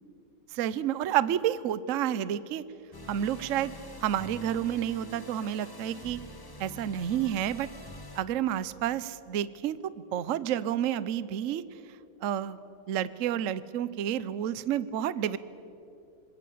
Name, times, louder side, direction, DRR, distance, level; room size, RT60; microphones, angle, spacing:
voice 1, 0.5-2.6 3.1-3.7 4.0-6.2 6.6-7.7 8.1-9.8 10.1-11.6 12.2-12.6 12.9-15.4, right 10 dB, 60° right, 16 dB, 0.9 m, -30 dB
sound 1, 2.9-8.2, left 1 dB, 20° left, 0.5 m, -45 dB
25.5 x 20.5 x 8.5 m, 2.8 s
omnidirectional pair, 2.1 m